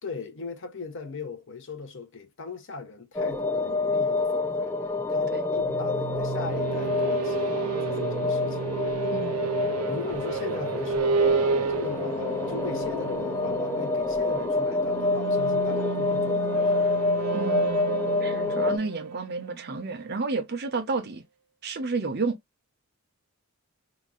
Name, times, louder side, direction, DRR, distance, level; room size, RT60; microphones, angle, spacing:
voice 1, 0.0-4.8 5.1-8.7 9.9-17.0, left 4 dB, 55° left, 0.8 m, -39 dB
sound 1, 3.2-18.8, left 3 dB, 10° left, 0.4 m, -27 dB
sound 2, 5.5-20.2, right 6 dB, 75° right, 0.4 m, -31 dB
voice 2, 9.1-9.5 17.3-21.2 21.6-22.4, right 3 dB, 45° right, 0.7 m, -31 dB
3.0 x 2.6 x 3.7 m
head